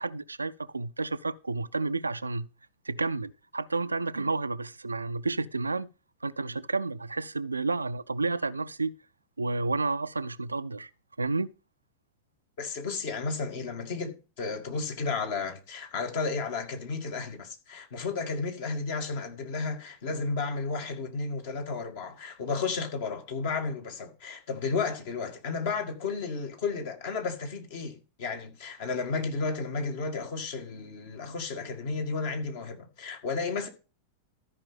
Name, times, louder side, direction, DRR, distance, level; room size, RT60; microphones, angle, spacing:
voice 1, 0.0-2.5 2.8-5.9 6.2-8.9 9.4-10.9 11.2-11.5, right 3 dB, 80° right, 0.4 m, -31 dB
voice 2, 12.6-33.7, left 4 dB, 55° left, 1.9 m, -33 dB
13.5 x 5.3 x 5.1 m
figure-of-eight pair, 90°, 0 cm